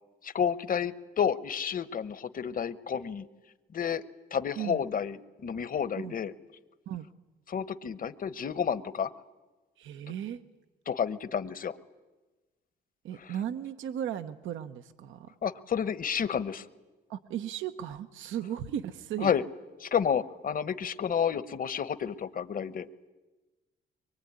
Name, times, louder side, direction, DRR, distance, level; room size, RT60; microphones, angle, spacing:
voice 1, 0.2-3.3 3.7-4.0 4.3-6.3 7.5-9.1 10.9-11.8 13.2-13.3 15.4-16.7 19.2-19.4 19.8-22.9, left 7 dB, 45° left, 14 dB, 1.2 m, -30 dB
voice 2, 9.8-10.4 13.0-15.3 17.1-19.3, right 10 dB, 80° right, 8 dB, 1.0 m, -36 dB
24.0 x 23.0 x 9.6 m, 1.2 s
cardioid pair, 90°, 20 cm